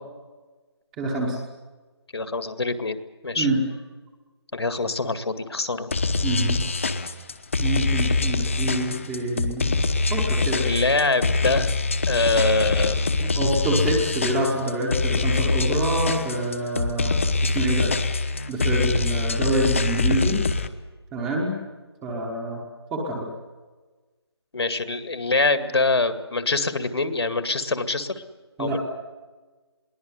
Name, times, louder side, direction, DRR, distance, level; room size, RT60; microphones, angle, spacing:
voice 1, 1.0-1.4 3.4-3.6 6.2-6.6 7.6-9.7 10.1-10.7 13.2-17.9 18.5-20.4 21.1-21.5 22.0-22.6 22.9-23.3 28.6-28.8, right 1 dB, 5° right, 0 dB, 1.0 m, -26 dB
voice 2, 2.1-3.0 3.2-3.5 4.5-5.9 10.6-11.7 12.1-13.2 24.5-28.2 28.6-28.8, left 3 dB, 65° left, 11 dB, 2.1 m, -24 dB
sound 1, 5.9-20.7, left 3 dB, 30° left, 1.0 m, -24 dB
22.0 x 17.0 x 9.5 m, 1.3 s
figure-of-eight pair, 175°, 14 cm